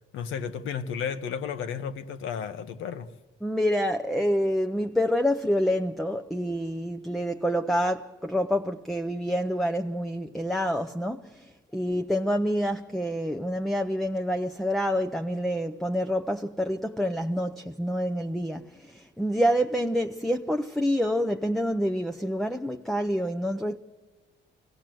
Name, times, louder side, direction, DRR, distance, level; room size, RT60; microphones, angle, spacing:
voice 1, 0.1-3.1, left 7 dB, 85° left, 1.2 m, -33 dB
voice 2, 3.4-23.8, equal, ahead, 0.6 m, -27 dB
24.0 x 17.5 x 7.7 m
cardioid pair, 90°, 20 cm